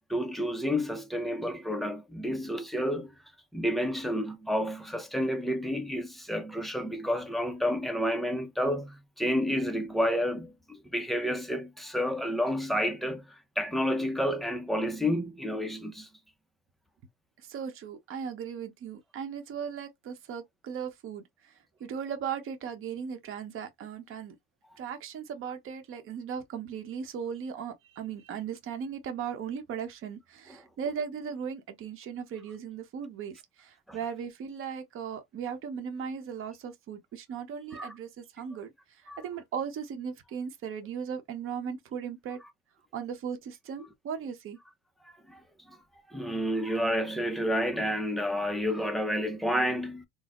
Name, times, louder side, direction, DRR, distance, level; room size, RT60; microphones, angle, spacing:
voice 1, 0.1-3.2 3.5-16.1 33.9-34.0 37.7-37.9 39.1-39.2 45.3-45.4 46.1-50.1, equal, ahead, 0.4 m, -30 dB
voice 2, 17.4-24.4 24.8-42.4 42.9-44.6, right 7 dB, 35° right, 0.8 m, -37 dB
4.0 x 2.1 x 2.9 m
cardioid pair, 135°, 37 cm